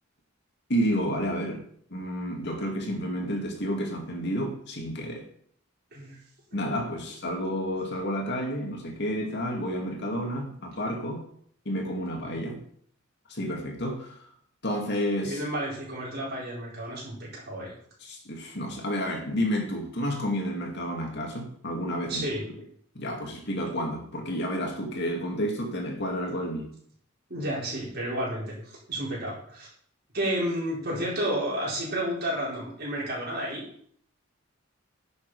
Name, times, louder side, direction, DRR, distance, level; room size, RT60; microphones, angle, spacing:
voice 1, 0.7-1.6 1.9-5.2 6.5-11.2 11.7-12.6 13.3-14.3 14.6-15.4 18.0-22.2 22.9-26.7, equal, 60° left, 2 dB, 2.3 m, -30 dB
voice 2, 15.2-17.7 22.1-22.5 27.3-29.7 30.1-33.7, right 1 dB, 50° right, -4 dB, 4.7 m, -31 dB
10.5 x 7.0 x 4.9 m, 0.63 s
head